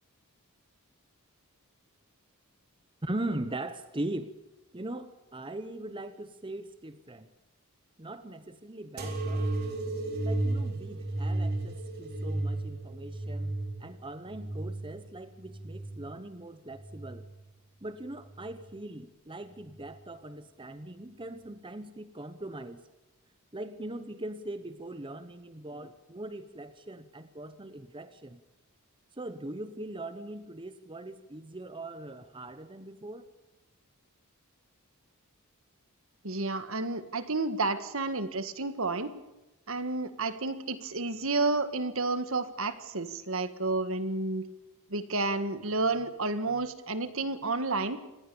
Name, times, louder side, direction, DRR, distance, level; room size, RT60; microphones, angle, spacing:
voice 1, 3.0-4.3 4.7-7.3 8.0-9.5 10.2-13.5 13.8-17.3 17.8-22.8 23.5-28.4 29.1-33.3, right 1 dB, 20° right, 11 dB, 0.9 m, -40 dB
sound 1, 9.0-16.2 16.7-17.5 18.2-18.8 19.7-19.8, right 2 dB, 45° right, 4.3 m, -34 dB
voice 2, 36.2-39.1 39.7-44.4 44.9-48.0, right 3 dB, 65° right, 11 dB, 1.7 m, -31 dB
26.5 x 19.0 x 7.0 m, 0.99 s
head